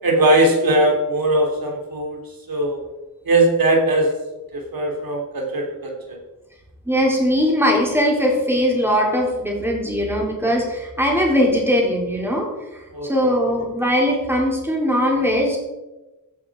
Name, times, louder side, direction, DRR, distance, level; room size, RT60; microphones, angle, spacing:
voice 1, 0.0-2.2 2.5-2.8 3.2-4.1 4.5-6.2 12.9-13.1, right 1 dB, 90° right, 1 dB, 3.2 m, -19 dB
voice 2, 6.9-12.5 13.0-15.6, equal, 5° right, -2 dB, 4.1 m, -20 dB
15.5 x 9.2 x 4.9 m, 1.1 s
wide cardioid pair, 135°, 34 cm